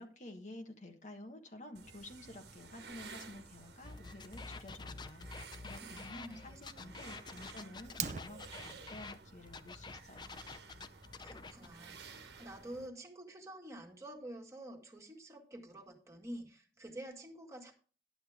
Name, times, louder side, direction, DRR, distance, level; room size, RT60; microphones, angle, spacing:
voice 1, 0.0-10.3, left 1 dB, 45° left, 4 dB, 1.3 m, -51 dB
sound 1, 1.7-12.9, right 4 dB, 75° right, 1.4 m, -54 dB
sound 2, 3.8-9.2 9.5-11.7, left 4 dB, 25° left, 0.5 m, -48 dB
voice 2, 5.8-7.0 11.1-17.7, right 1 dB, 15° right, 1 dB, 1.9 m, -49 dB
Fire, 7.8-8.8, right 8 dB, 45° right, 0.6 m, -41 dB
11.5 x 8.8 x 3.5 m, 0.38 s
head